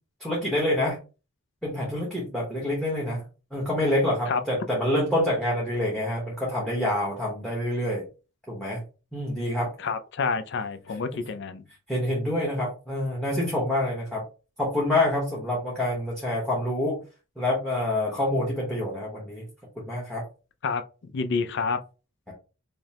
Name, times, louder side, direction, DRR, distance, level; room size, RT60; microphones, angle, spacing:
voice 1, 0.2-1.0 1.6-3.2 3.5-8.0 8.5-8.8 9.1-9.7 11.9-14.2 14.6-17.0 17.4-19.4 19.8-20.2 22.3-22.4, left 1 dB, ahead, 0.9 m, -27 dB
voice 2, 9.8-11.6 20.6-20.8 21.1-21.8, left 4 dB, 50° left, 0.4 m, -28 dB
5.1 x 2.0 x 2.8 m
head